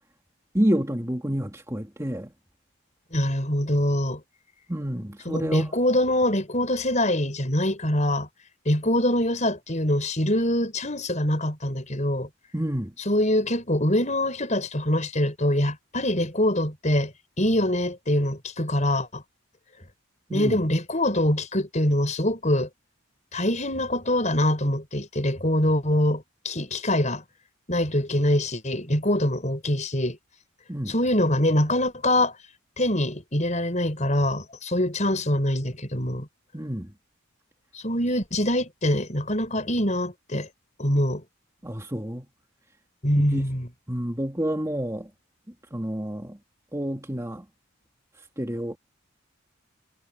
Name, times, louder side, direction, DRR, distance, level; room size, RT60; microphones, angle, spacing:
voice 1, 0.5-2.3 4.7-5.7 12.5-12.9 20.3-20.6 30.7-30.9 36.5-36.9 41.6-42.3 43.3-43.4 43.9-45.1 45.7-46.4 46.7-47.4 48.4-48.8, equal, 15° right, 2.0 m, -28 dB
voice 2, 3.1-4.2 5.3-8.3 8.7-12.3 13.1-17.1 17.4-19.2 20.3-22.7 23.3-27.2 27.7-30.2 30.9-32.3 32.8-36.3 37.7-40.5 40.8-41.2 43.0-43.7, left 1 dB, 35° left, 5.5 m, -24 dB
head